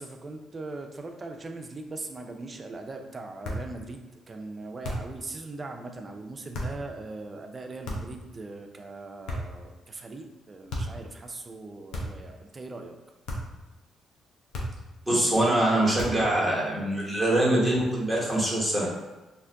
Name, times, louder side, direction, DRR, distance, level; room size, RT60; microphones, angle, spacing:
voice 1, 0.0-12.9, right 3 dB, 30° right, 4 dB, 0.4 m, -40 dB
sound 1, 3.4-3.7 4.8-5.2 6.5-6.8 7.8-8.2 9.3-9.7 10.7-11.0 11.9-12.3 13.3-13.6 14.5-14.9 16.0-16.3, left 1 dB, 80° left, 0.6 m, -34 dB
voice 2, 15.1-18.9, right 1 dB, 5° right, -6 dB, 1.1 m, -24 dB
2.6 x 2.4 x 3.4 m, 1.1 s
cardioid pair, 90°, 0 cm